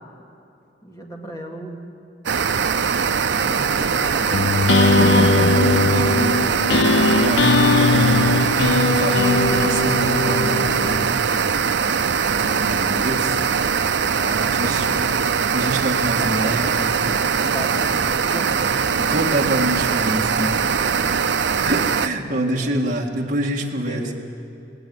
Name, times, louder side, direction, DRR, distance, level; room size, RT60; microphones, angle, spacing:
voice 1, 0.8-1.8 3.4-4.4 14.3-15.2 16.2-16.6 17.1-19.2 20.6-21.3 22.3-22.8 23.7-24.1, equal, 20° left, 0 dB, 2.3 m, -35 dB
sound 1, 2.3-22.1, right 6 dB, 80° right, 0.6 m, -21 dB
sound 2, 4.3-11.1, left 3 dB, 85° left, 0.7 m, -19 dB
voice 2, 4.7-7.5 7.9-8.5 8.9-11.5 11.8-13.5 14.2-15.0 15.5-16.8 19.1-20.6 21.6-24.1, right 1 dB, 45° right, -1 dB, 1.9 m, -26 dB
18.0 x 18.0 x 9.4 m, 2.7 s
head